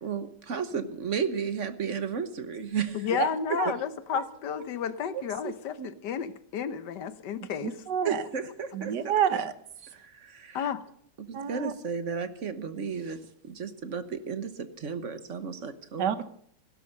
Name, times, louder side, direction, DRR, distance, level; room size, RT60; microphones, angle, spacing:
voice 1, 0.0-3.1 3.7-3.8 8.0-8.9 9.3-9.4 9.9-10.6 11.2-16.1, right 6 dB, 50° right, 10 dB, 1.3 m, -33 dB
voice 2, 2.9-7.8 10.5-10.8, left 8 dB, 75° left, 12 dB, 1.6 m, -32 dB
voice 3, 7.6-8.2 8.7-9.5 11.3-11.7 16.0-16.2, right 8 dB, 75° right, 11 dB, 1.6 m, -28 dB
16.5 x 12.5 x 6.5 m, 0.66 s
omnidirectional pair, 1.9 m